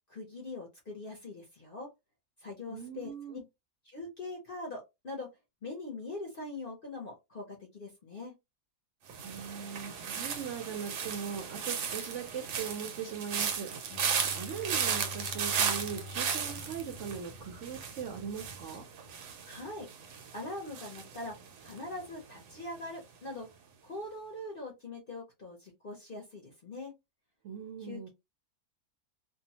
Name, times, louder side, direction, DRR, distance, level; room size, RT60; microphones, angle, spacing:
voice 1, 0.1-1.9 2.4-3.4 3.8-5.3 5.6-8.3 19.4-19.9 20.3-21.3 21.6-23.5 23.8-26.9 27.8-28.1, left 2 dB, 45° left, 0.7 m, -42 dB
voice 2, 2.7-3.4 9.2-14.0 14.3-18.8 27.4-28.1, right 7 dB, 65° right, 0.8 m, -40 dB
sound 1, 9.1-22.1 22.4-22.8, right 7 dB, 80° right, 1.1 m, -36 dB
Bowed string instrument, 13.9-17.8, left 4 dB, 70° left, 1.0 m, -47 dB
2.6 x 2.2 x 2.8 m
omnidirectional pair, 1.7 m